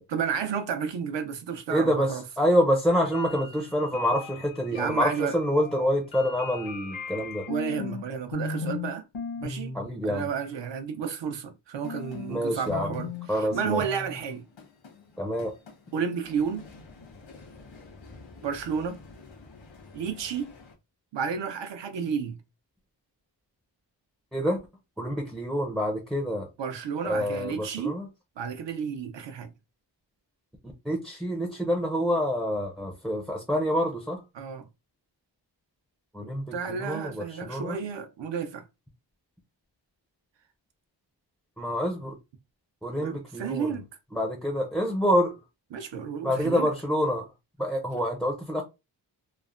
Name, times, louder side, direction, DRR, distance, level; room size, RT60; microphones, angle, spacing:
voice 1, 0.1-2.2 4.7-5.3 7.5-9.0 9.4-9.8 10.0-14.4 15.9-16.7 18.4-19.0 19.9-20.5 21.1-22.4 26.6-28.0 28.4-29.5 34.3-34.7 36.5-38.6 43.0-43.9 45.7-46.7, right 6 dB, 75° right, 0.6 m, -31 dB
voice 2, 1.7-7.5 9.7-10.3 12.3-12.9 13.3-13.8 15.2-15.5 24.3-24.6 25.0-26.5 27.0-28.1 30.9-34.2 36.1-37.8 41.6-42.1 42.8-43.7 44.1-45.3 46.2-47.2 47.6-48.6, equal, ahead, 0.4 m, -27 dB
sound 1, 2.9-8.0 8.3-8.9 9.1-9.8 11.8-20.7, left 4 dB, 85° left, 1.0 m, -39 dB
3.1 x 2.0 x 2.4 m
wide cardioid pair, 135°, 44 cm